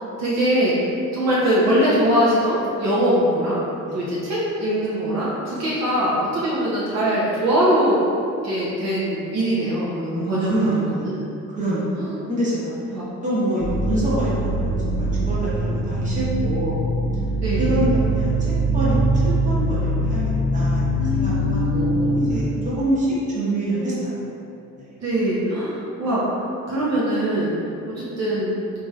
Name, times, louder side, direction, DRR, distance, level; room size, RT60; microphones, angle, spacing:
voice 1, 0.2-0.8 1.1-3.6 3.9-8.0 8.4-11.1 12.0-12.1 12.9-13.0 17.4-17.8 21.0-22.8 25.0-26.2 26.7-27.6 27.9-28.6, right 1 dB, 60° right, -8 dB, 0.7 m, -22 dB
voice 2, 10.1-11.2 11.5-12.7 13.2-16.8 17.6-23.1 23.3-24.2 24.8-24.9, right 1 dB, 25° right, -9 dB, 1.0 m, -26 dB
sound 1, 13.6-22.3, right 1 dB, 55° left, 0.7 m, -22 dB
3.0 x 2.8 x 2.3 m, 2.7 s
cardioid pair, 90°, 30 cm